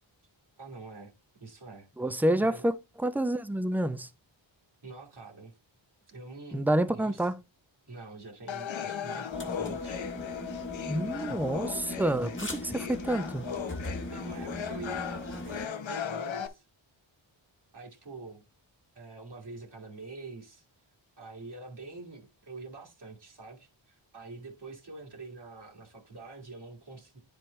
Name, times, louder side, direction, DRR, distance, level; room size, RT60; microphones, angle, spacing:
voice 1, 0.6-1.1 1.4-2.6 4.8-5.5 6.1-7.3 7.9-10.0 11.2-11.4 14.1-16.6 17.7-18.4 19.0-20.7 21.2-27.2, right 3 dB, 55° right, 2.0 m, -46 dB
voice 2, 2.0-4.1 6.5-7.4 10.9-13.5, right 1 dB, 5° right, 0.5 m, -28 dB
sound 1, 8.5-16.5, left 8 dB, 70° left, 0.8 m, -37 dB
sound 2, 9.3-15.7, left 1 dB, 25° left, 1.4 m, -39 dB
9.6 x 4.6 x 3.1 m
wide cardioid pair, 100°, 47 cm